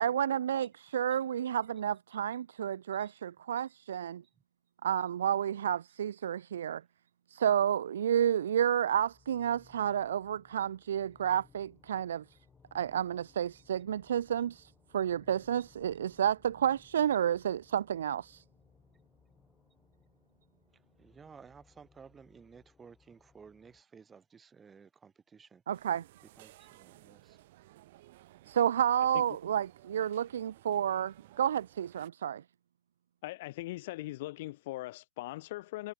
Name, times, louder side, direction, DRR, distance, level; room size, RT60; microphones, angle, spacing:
voice 1, 0.0-4.2 4.8-6.8 7.3-12.2 12.7-18.4 25.7-26.0 28.5-32.4, right 9 dB, 80° right, 1.0 m, -30 dB
sound 1, 8.5-23.8, left 5 dB, 10° left, 7.4 m, -65 dB
voice 2, 21.0-25.6 26.4-27.4, right 6 dB, 10° right, 6.3 m, -55 dB
sound 2, 25.7-32.1, right 17 dB, 45° right, 4.7 m, -58 dB
voice 3, 33.2-35.9, left 18 dB, 45° left, 0.4 m, -40 dB
supercardioid pair, 170°, 0 cm